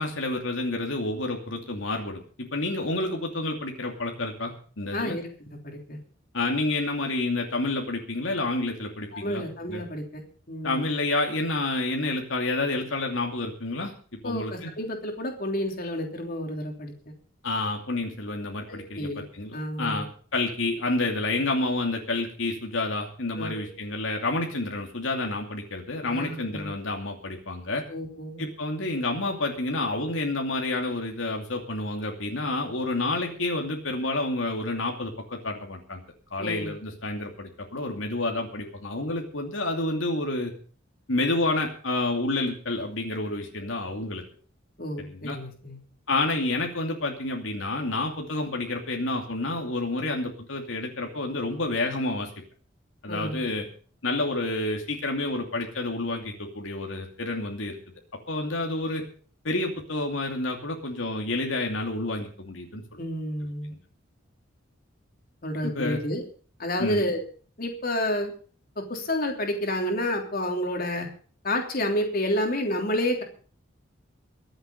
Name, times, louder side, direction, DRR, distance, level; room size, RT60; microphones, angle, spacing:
voice 1, 0.0-5.2 6.3-9.8 10.6-13.9 14.2-14.7 17.4-27.8 28.4-36.0 36.3-40.5 41.1-44.2 45.1-45.4 46.1-52.3 53.0-53.7 54.0-57.7 58.3-59.0 59.4-63.0 63.7-63.8 65.6-66.0 66.8-67.1, left 2 dB, 75° left, 1 dB, 2.7 m, -29 dB
voice 2, 4.9-5.3 5.6-6.0 9.1-10.2 10.5-10.9 14.2-17.1 18.7-19.2 19.5-20.1 23.4-23.7 26.1-26.7 27.9-28.5 36.4-36.7 44.8-45.8 53.1-53.4 63.0-63.7 65.4-66.2 66.6-67.2 67.6-68.3 68.7-71.1 71.4-73.2, left 1 dB, 45° left, 2 dB, 3.2 m, -30 dB
23.0 x 8.0 x 5.3 m, 0.42 s
head